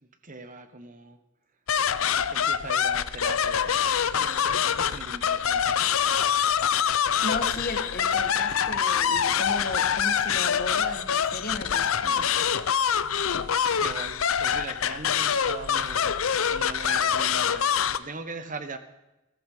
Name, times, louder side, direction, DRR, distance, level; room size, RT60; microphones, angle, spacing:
voice 1, 0.2-1.2 2.3-5.9 13.8-16.1 16.5-18.8, right 3 dB, 40° right, 10 dB, 1.4 m, -40 dB
sound 1, 1.7-18.0, left 8 dB, 75° left, 0.7 m, -25 dB
voice 2, 7.2-12.3, left 2 dB, 45° left, 5 dB, 2.0 m, -34 dB
15.5 x 14.5 x 5.1 m, 0.96 s
head